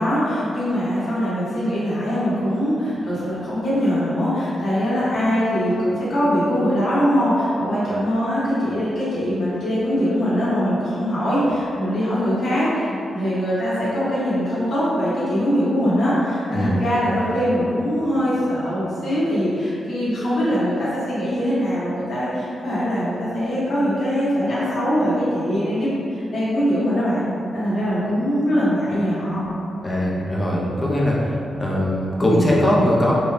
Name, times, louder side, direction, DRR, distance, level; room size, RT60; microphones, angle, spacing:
voice 1, 0.0-27.3 27.5-29.4, equal, 65° left, -11 dB, 1.2 m, -22 dB
voice 2, 29.8-31.3 31.6-33.1, equal, 20° left, -5 dB, 0.6 m, -20 dB
4.0 x 2.2 x 3.2 m, 2.7 s
wide cardioid pair, 155°, 0 cm